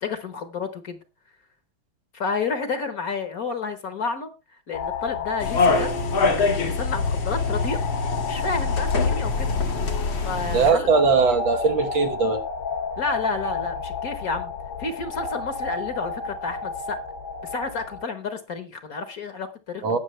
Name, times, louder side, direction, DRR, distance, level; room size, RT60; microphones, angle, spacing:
voice 1, 0.0-1.0 2.1-4.3 4.7-5.9 6.4-7.8 8.3-9.5 10.2-10.9 13.0-14.5 14.8-17.0 17.4-19.9, left 4 dB, 55° left, 1.4 m, -30 dB
sound 1, 4.7-18.1, left 5 dB, 75° left, 2.3 m, -32 dB
sound 2, 5.4-10.7, left 4 dB, 90° left, 2.8 m, -24 dB
Marimba xylophone, 5.7-7.4, right 12 dB, 70° right, 2.0 m, -39 dB
voice 2, 10.5-12.4 19.8-20.0, right 4 dB, 85° right, 2.3 m, -20 dB
19.5 x 6.5 x 3.1 m
omnidirectional pair, 2.1 m